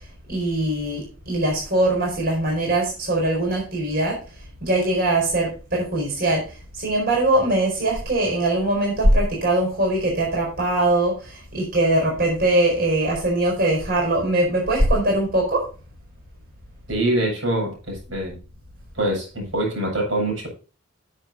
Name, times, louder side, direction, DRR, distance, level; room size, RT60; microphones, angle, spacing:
voice 1, 0.3-4.2 4.6-6.5 6.8-15.6, right 1 dB, 55° right, -1 dB, 4.7 m, -21 dB
voice 2, 16.9-18.4 18.9-20.5, right 1 dB, 75° right, -1 dB, 6.6 m, -24 dB
9.3 x 7.7 x 4.1 m, 0.34 s
head